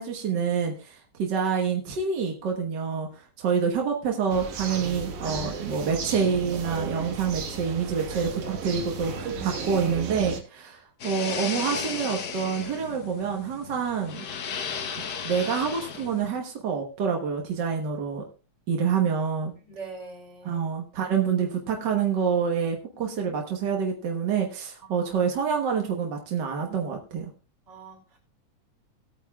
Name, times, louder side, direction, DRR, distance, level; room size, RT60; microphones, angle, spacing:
voice 1, 0.0-14.2 15.2-18.2 18.7-19.5 20.4-27.3, right 6 dB, 50° right, 1.3 m, -27 dB
sound 1, 4.3-10.4, right 4 dB, 75° right, 3.0 m, -34 dB
sound 2, 11.0-16.3, left 6 dB, 85° left, 0.9 m, -35 dB
voice 2, 19.6-20.6 24.8-25.1 27.7-28.2, right 4 dB, 35° right, 5.0 m, -43 dB
19.0 x 9.1 x 2.3 m
omnidirectional pair, 3.5 m